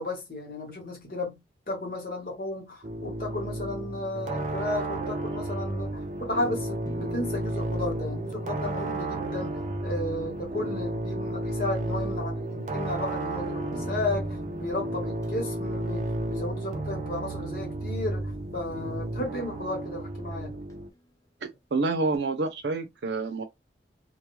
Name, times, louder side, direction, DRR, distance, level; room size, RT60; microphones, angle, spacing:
voice 1, 0.0-1.4 1.7-20.6, left 2 dB, 55° left, 1.1 m, -34 dB
sound 1, 2.8-20.9, right 1 dB, 40° right, 0.4 m, -32 dB
sound 2, 6.0-6.1 6.9-11.9 13.2-13.3 13.7-21.1 22.1-22.2, left 1 dB, 20° left, 0.4 m, -47 dB
voice 2, 21.4-23.4, right 3 dB, 80° right, 0.6 m, -28 dB
2.2 x 2.2 x 3.0 m
head